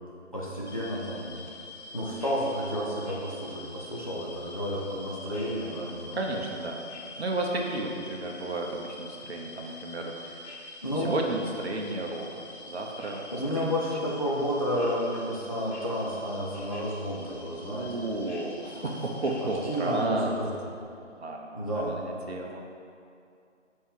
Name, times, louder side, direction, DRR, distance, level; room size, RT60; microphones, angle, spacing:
voice 1, 0.3-1.3 1.9-6.2 10.8-11.1 13.3-18.0 19.4-20.5 21.6-22.0, equal, 30° left, -6 dB, 0.5 m, -31 dB
sound 1, 0.7-20.1, left 2 dB, 65° left, 0.9 m, -46 dB
voice 2, 6.1-6.8 7.2-10.5 10.9-13.3 13.5-14.2 17.5-20.4 21.2-22.6, right 2 dB, 55° right, 0 dB, 0.8 m, -33 dB
6.7 x 4.2 x 3.6 m, 2.5 s
figure-of-eight pair, 155°, 37 cm